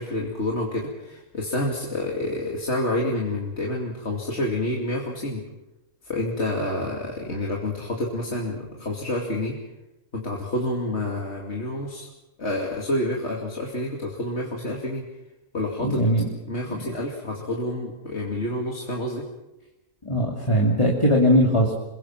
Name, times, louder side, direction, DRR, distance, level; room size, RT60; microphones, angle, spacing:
voice 1, 0.0-5.5 6.0-9.6 10.1-12.1 12.4-15.0 15.5-16.0 16.5-19.3, left 1 dB, 50° left, -1 dB, 3.0 m, -28 dB
voice 2, 15.8-16.3 20.0-21.8, equal, 20° left, -2 dB, 2.8 m, -20 dB
28.0 x 22.0 x 6.0 m, 0.96 s
omnidirectional pair, 1.5 m